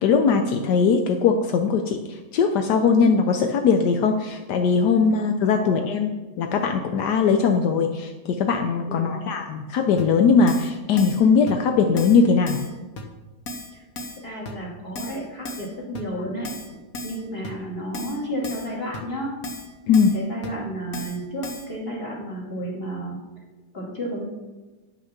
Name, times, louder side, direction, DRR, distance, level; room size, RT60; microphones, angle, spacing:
voice 1, 0.0-12.6 19.9-20.1, left 5 dB, 80° left, 5 dB, 1.3 m, -20 dB
voice 2, 5.4-5.8 8.9-9.2 14.2-19.3 20.1-23.2 23.7-24.2, right 1 dB, 35° left, -4 dB, 2.7 m, -32 dB
Keyboard (musical), 10.0-10.1 10.5-10.7 11.0-11.2 11.5-11.6 12.0-12.2 12.5-12.7 13.0-13.1 13.5-13.7 14.0-14.2 14.5-14.6 15.0-15.2 15.5-15.7 15.9-16.0 16.4-16.7 16.9-17.2 17.4-17.5 17.9-18.2 18.4-18.7 18.9-19.0 19.4-19.7 19.9-20.2 20.4-20.5 20.9-21.2 21.4-21.7, left 1 dB, 60° left, 1.5 m, -35 dB
10.5 x 6.0 x 5.9 m, 1.2 s
omnidirectional pair, 1.8 m